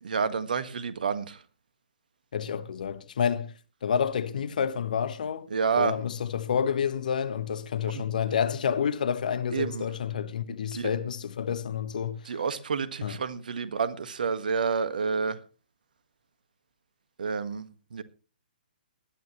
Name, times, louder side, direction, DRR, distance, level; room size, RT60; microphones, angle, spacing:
voice 1, 0.0-1.4 5.5-5.9 7.9-8.0 9.5-9.9 10.7-10.9 12.3-15.4 17.2-18.0, right 5 dB, 65° right, 1.7 m, -29 dB
voice 2, 2.3-3.5 3.8-5.5 5.8-12.3 13.0-13.2, left 7 dB, 60° left, 1.3 m, -29 dB
19.5 x 12.5 x 3.1 m
figure-of-eight pair, 125°, 5 cm